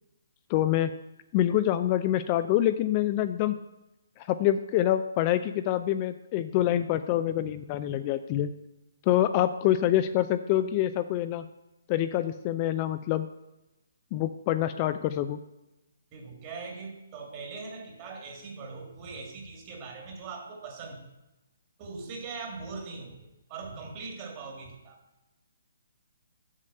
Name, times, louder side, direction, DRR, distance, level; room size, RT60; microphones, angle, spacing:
voice 1, 0.5-1.0 1.3-3.6 4.2-8.5 9.0-11.5 11.9-13.3 14.1-15.4, left 12 dB, 30° left, 10 dB, 0.3 m, -26 dB
voice 2, 16.1-21.1 21.8-25.0, right 4 dB, 30° right, 2 dB, 1.8 m, -41 dB
7.4 x 6.3 x 5.4 m, 0.96 s
hypercardioid pair, 145°, 0 cm